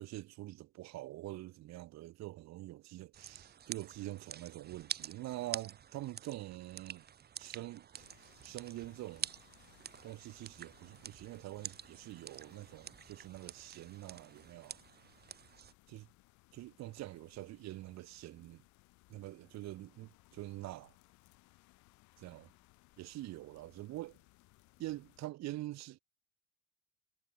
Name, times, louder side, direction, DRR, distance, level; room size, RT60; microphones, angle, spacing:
voice 1, 0.0-7.1 7.4-9.3 10.0-14.8 15.9-16.0 16.5-18.6 19.1-20.9 22.2-22.5 23.0-24.2 24.8-26.0, right 16 dB, 60° right, 1.5 m, -45 dB
sound 1, 3.1-15.7, right 8 dB, 30° right, 1.0 m, -48 dB
sound 2, 8.0-25.3, left 22 dB, 70° left, 2.0 m, -66 dB
supercardioid pair, 85°, 31 cm